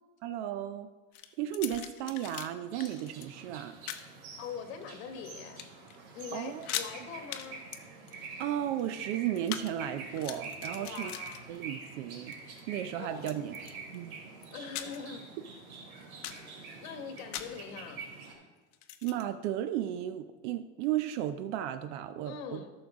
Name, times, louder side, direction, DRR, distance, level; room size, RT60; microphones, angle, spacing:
voice 1, 0.2-0.9 1.4-3.8 6.3-6.7 8.4-11.1 11.5-12.4 12.7-14.1 19.0-22.6, right 11 dB, 55° right, 10 dB, 0.6 m, -34 dB
sound 1, 1.1-2.5 2.8-3.3 3.9-4.1 4.7-5.3 5.6-6.0 6.2-6.3 6.5-6.9 7.3-7.5 7.7-9.7 10.0-11.9 12.2-12.6 13.2-14.0 14.4-15.2 15.5-15.6 16.0-16.5 17.3-17.6 18.7-19.3, left 11 dB, 90° left, 0.9 m, -41 dB
sound 2, 2.7-18.3, right 4 dB, 90° right, 2.5 m, -46 dB
voice 2, 4.4-5.6 6.1-7.7 10.8-11.5 13.0-13.6 14.5-15.2 16.5-18.0 22.2-22.7, left 7 dB, 65° left, 7 dB, 1.3 m, -43 dB
13.0 x 6.3 x 3.6 m, 1.3 s
supercardioid pair, 145°, 42 cm